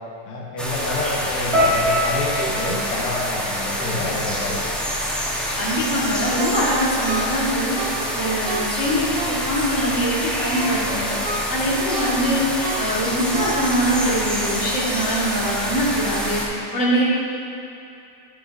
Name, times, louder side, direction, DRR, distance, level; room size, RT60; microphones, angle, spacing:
voice 1, 0.3-4.7, left 2 dB, 65° left, -4 dB, 1.4 m, -28 dB
sound 1, 0.6-16.5, equal, ahead, 0.3 m, -26 dB
sound 2, 1.5-5.7 6.0-6.8 7.4-7.6, left 1 dB, 35° right, 2.2 m, -27 dB
voice 2, 5.6-7.8 8.2-11.2 11.5-12.5 12.8-16.4 16.7-17.0, equal, 45° left, -7 dB, 2.0 m, -23 dB
Ringtone, 6.4-9.8 10.2-14.0 14.4-14.5, right 3 dB, 75° right, 1.4 m, -33 dB
11.0 x 6.7 x 2.5 m, 2.7 s
omnidirectional pair, 2.0 m